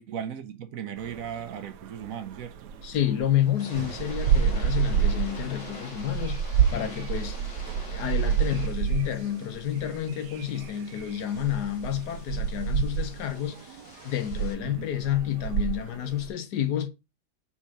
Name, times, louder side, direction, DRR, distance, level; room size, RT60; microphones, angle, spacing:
voice 1, 0.0-2.7 14.6-14.9, right 8 dB, 65° right, 1.0 m, -37 dB
sound 1, 1.0-3.4 3.7-16.3, right 8 dB, 85° right, 1.3 m, -29 dB
voice 2, 2.8-6.4 6.7-7.4 7.9-16.9, left 11 dB, 80° left, 1.5 m, -29 dB
sound 2, 3.4-14.5, left 2 dB, 50° left, 1.7 m, -46 dB
4.5 x 4.2 x 5.8 m
omnidirectional pair, 1.7 m